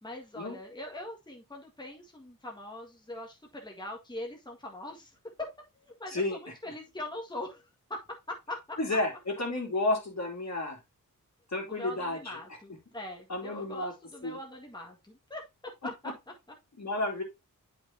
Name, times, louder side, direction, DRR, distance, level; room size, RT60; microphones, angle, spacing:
voice 1, 0.0-5.5 5.7-8.0 8.3-8.8 11.7-15.4 15.8-16.1, left 1 dB, 15° left, -1 dB, 1.8 m, -42 dB
voice 2, 6.1-6.4 8.8-10.8 11.5-12.4 13.3-13.9 14.2-14.4 16.8-17.2, left 2 dB, 50° left, 1 dB, 2.9 m, -31 dB
8.3 x 5.8 x 2.8 m, 0.22 s
cardioid pair, 50°, 34 cm